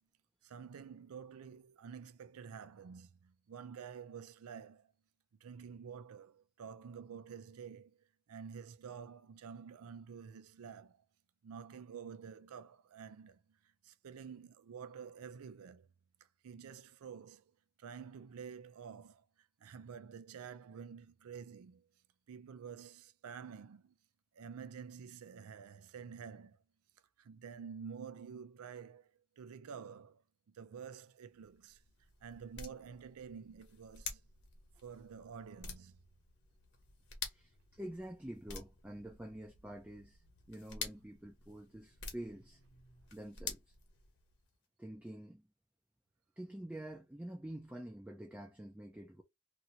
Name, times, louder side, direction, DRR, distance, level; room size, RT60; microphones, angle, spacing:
voice 1, 0.4-4.9 5.4-11.0 11.4-13.6 13.8-15.9 16.4-17.5 17.8-19.2 19.6-21.9 22.3-23.9 24.3-26.6 27.2-29.1 29.4-31.8 32.2-34.2 34.8-36.0, right 6 dB, 90° right, 0.4 m, -49 dB
sound 1, 31.3-44.5, left 5 dB, 55° left, 1.1 m, -50 dB
voice 2, 37.3-40.2 40.5-42.6 43.1-43.7 44.8-45.5 46.4-49.2, right 1 dB, 5° right, 0.4 m, -47 dB
2.7 x 2.6 x 2.7 m
head